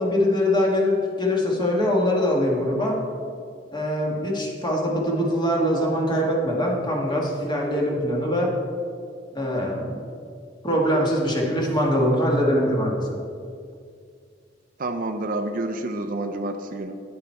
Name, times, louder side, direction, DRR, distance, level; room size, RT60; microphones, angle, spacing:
voice 1, 0.0-3.0 3.7-8.5 9.3-10.0 10.6-13.2, equal, 25° left, -2 dB, 1.8 m, -23 dB
voice 2, 14.8-17.0, right 2 dB, 50° right, 7 dB, 0.6 m, -29 dB
9.8 x 8.9 x 4.5 m, 2.3 s
head